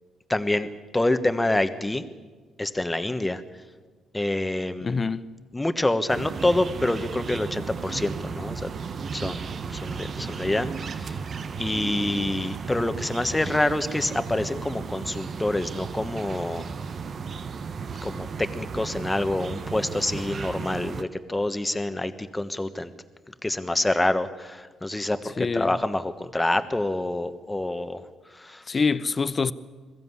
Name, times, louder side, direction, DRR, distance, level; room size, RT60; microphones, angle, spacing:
voice 1, 0.3-2.0 2.6-3.4 4.1-5.0 5.5-8.7 9.1-11.2 11.6-16.7 18.0-22.9 23.4-28.0 28.3-28.6, left 1 dB, 10° left, 1.3 m, -27 dB
voice 2, 4.8-5.3 25.4-25.7 28.7-29.5, left 4 dB, 35° left, 0.7 m, -25 dB
sound 1, 6.1-21.0, right 5 dB, 50° right, 0.9 m, -34 dB
21.5 x 15.0 x 9.7 m
cardioid pair, 90°, 0 cm